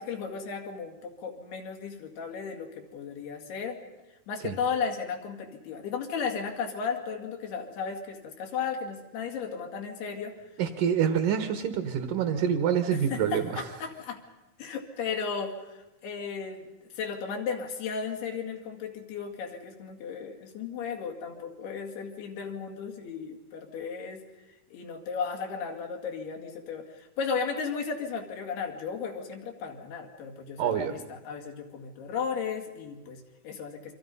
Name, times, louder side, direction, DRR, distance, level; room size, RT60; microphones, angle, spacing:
voice 1, 0.0-3.8 4.3-10.4 12.9-14.2 14.6-16.7 16.9-24.2 24.7-33.9, left 6 dB, 85° left, 3 dB, 4.5 m, -35 dB
voice 2, 10.6-13.6 30.6-30.9, right 8 dB, 65° right, 8 dB, 2.5 m, -26 dB
29.0 x 24.5 x 5.5 m, 1.1 s
omnidirectional pair, 4.5 m